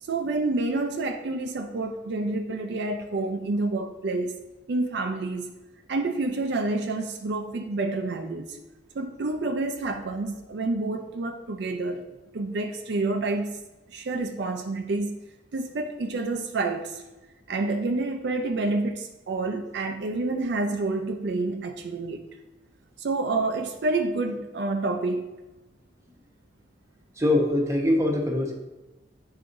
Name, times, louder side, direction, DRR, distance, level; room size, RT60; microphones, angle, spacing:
voice 1, 0.0-4.3 4.7-5.5 5.9-8.6 8.9-12.0 12.3-13.6 13.9-15.2 15.5-17.0 17.5-22.3 23.0-25.3, right 2 dB, 65° right, 5 dB, 0.4 m, -28 dB
voice 2, 27.2-28.5, left 1 dB, 15° right, 1 dB, 0.8 m, -23 dB
7.6 x 4.8 x 2.6 m, 1.1 s
head